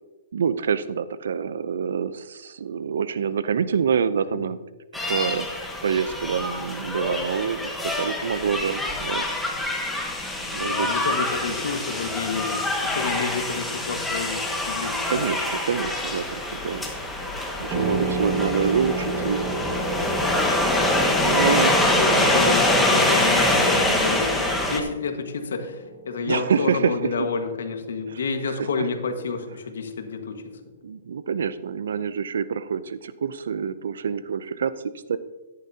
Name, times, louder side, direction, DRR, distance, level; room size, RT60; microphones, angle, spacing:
voice 1, 0.3-4.6 5.1-5.5 5.8-9.3 10.5-11.1 11.5-11.6 15.1-16.9 17.6-19.5 21.2-22.4 26.3-27.3 28.1-28.2 28.8-28.9 30.8-34.7 35.1-35.2, right 7 dB, 80° right, 14 dB, 0.5 m, -26 dB
sound 1, 4.9-24.8, left 1 dB, 5° left, 1.2 m, -24 dB
voice 2, 10.5-15.3 22.0-30.6, left 5 dB, 90° left, 6 dB, 1.5 m, -30 dB
sound 2, 17.7-26.9, right 3 dB, 25° right, 1.8 m, -33 dB
13.0 x 10.5 x 2.8 m, 1.2 s
hypercardioid pair, 155°, 0 cm